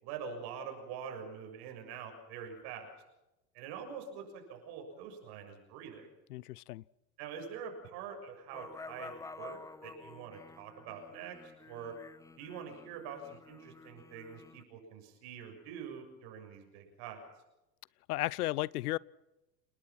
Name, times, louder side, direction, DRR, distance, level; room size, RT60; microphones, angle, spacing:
voice 1, 0.0-2.9 3.5-6.1 7.2-12.0 12.4-17.3, right 7 dB, 55° right, 6.9 m, -45 dB
voice 2, 6.3-6.8 18.1-19.0, left 17 dB, 65° left, 0.7 m, -34 dB
sound 1, 8.5-14.6, left 3 dB, 5° left, 0.7 m, -50 dB
29.5 x 19.0 x 6.0 m
hypercardioid pair, 85°, 49 cm